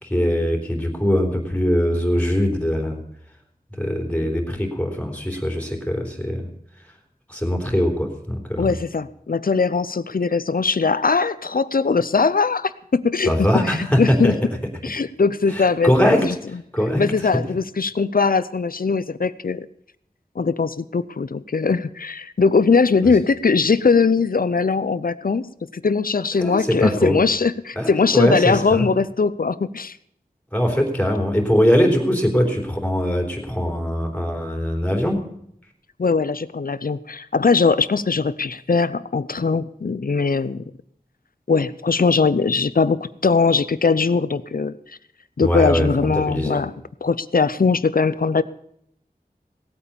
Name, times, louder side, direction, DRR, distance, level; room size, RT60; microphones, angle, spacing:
voice 1, 0.0-3.0 3.8-6.5 7.3-8.7 13.3-14.5 15.5-16.3 16.7-17.0 26.4-27.2 27.8-28.9 30.5-35.3 45.4-46.6, equal, 10° left, 2 dB, 3.4 m, -21 dB
voice 2, 8.6-14.3 14.8-16.3 17.0-19.7 20.4-25.5 25.7-30.0 36.0-40.6 41.5-45.0 45.4-46.7 47.0-48.4, left 4 dB, 65° left, 16 dB, 0.6 m, -20 dB
17.5 x 8.7 x 6.9 m, 0.71 s
wide cardioid pair, 50°, 16 cm